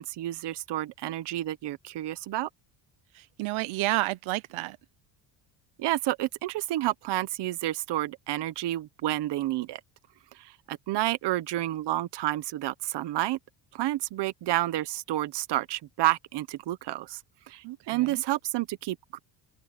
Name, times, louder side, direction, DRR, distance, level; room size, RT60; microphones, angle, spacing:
voice 1, 0.0-2.5 5.8-9.8 10.4-13.4 13.7-17.2 17.5-19.2, right 15 dB, 60° right, 1.1 m, -30 dB
voice 2, 3.1-4.8 17.6-18.2, right 19 dB, 80° right, 0.8 m, -31 dB
cardioid pair, 150°, 47 cm